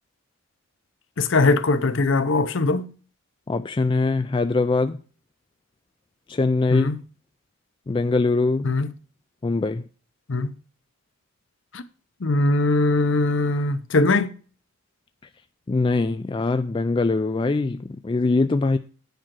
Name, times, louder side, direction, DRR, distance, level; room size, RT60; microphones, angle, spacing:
voice 1, 1.2-2.9 6.7-7.0 8.6-8.9 10.3-10.5 11.7-11.8 12.2-14.3, left 2 dB, 60° left, 0.7 m, -21 dB
voice 2, 3.5-5.0 6.3-6.9 7.9-8.8 9.4-9.8 15.7-18.8, left 3 dB, 25° left, 0.3 m, -22 dB
9.2 x 5.0 x 6.0 m
head